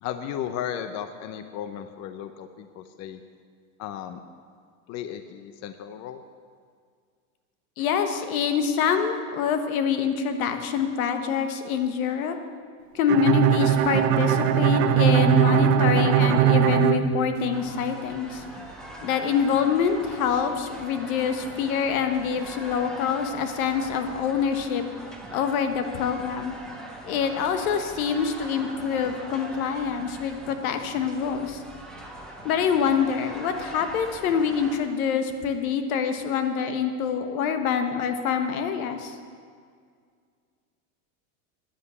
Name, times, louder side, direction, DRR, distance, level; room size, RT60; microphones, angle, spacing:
voice 1, 0.0-3.2 3.8-4.2 4.9-6.2, left 9 dB, 40° left, 9 dB, 0.7 m, -35 dB
voice 2, 7.8-12.4 12.9-18.4 19.0-24.8 25.3-26.5 27.0-31.6 32.4-39.1, left 7 dB, 80° left, 7 dB, 1.4 m, -25 dB
Bowed string instrument, 13.1-17.9, right 9 dB, 75° right, 0.9 m, -20 dB
sound 1, 17.5-34.8, right 1 dB, ahead, 1.6 m, -41 dB
10.0 x 8.3 x 8.2 m, 2.1 s
supercardioid pair, 125°, 42 cm